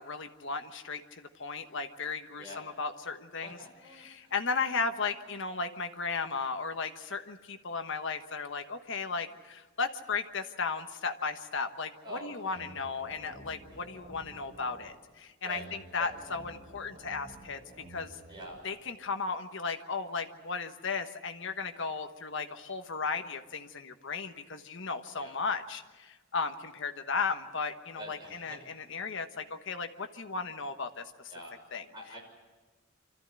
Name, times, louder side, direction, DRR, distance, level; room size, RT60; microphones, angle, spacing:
voice 1, 0.0-3.6 3.9-18.2 18.6-31.3 31.7-31.8, left 4 dB, 60° left, 7 dB, 1.3 m, -35 dB
voice 2, 3.4-4.3 12.0-12.6 13.7-13.9 15.4-15.7 16.0-16.1 18.3-18.6 25.2-25.4 28.0-28.6 31.3-31.5 31.9-32.2, right 1 dB, 20° right, 0 dB, 6.1 m, -46 dB
sound 1, 12.5-14.9 15.5-18.5, right 1 dB, 40° right, 4.3 m, -51 dB
26.0 x 14.0 x 9.8 m, 1.3 s
head